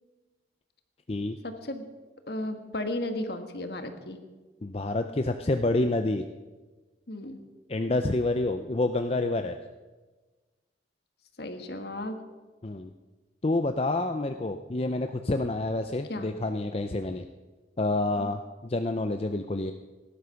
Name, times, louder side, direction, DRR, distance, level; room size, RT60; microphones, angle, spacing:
voice 1, 1.4-1.9 2.3-4.2 7.1-7.4 11.4-12.2 16.1-16.3 18.2-18.3, left 1 dB, 60° left, 7 dB, 1.6 m, -34 dB
voice 2, 4.6-6.2 7.7-9.6 12.6-12.9 13.4-17.2 17.8-19.7, left 2 dB, 35° left, 7 dB, 0.6 m, -28 dB
18.0 x 11.5 x 5.8 m, 1.3 s
head